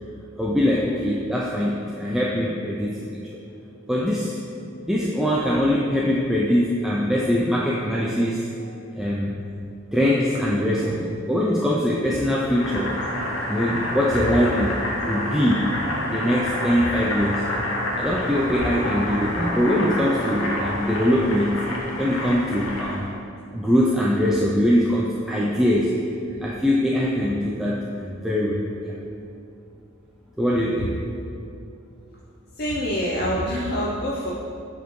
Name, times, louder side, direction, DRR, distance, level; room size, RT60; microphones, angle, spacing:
voice 1, 0.4-3.4 3.9-4.4 4.9-8.5 8.9-9.4 9.9-13.0 13.5-15.7 16.1-17.4 18.0-21.6 22.0-23.1 23.5-26.0 26.4-28.9 30.4-31.0, equal, ahead, -5 dB, 0.3 m, -22 dB
Boiling, 12.5-23.1, left 1 dB, 70° left, 0.9 m, -28 dB
voice 2, 32.6-34.3, equal, 50° left, -4 dB, 0.5 m, -25 dB
8.0 x 4.2 x 3.0 m, 2.6 s
head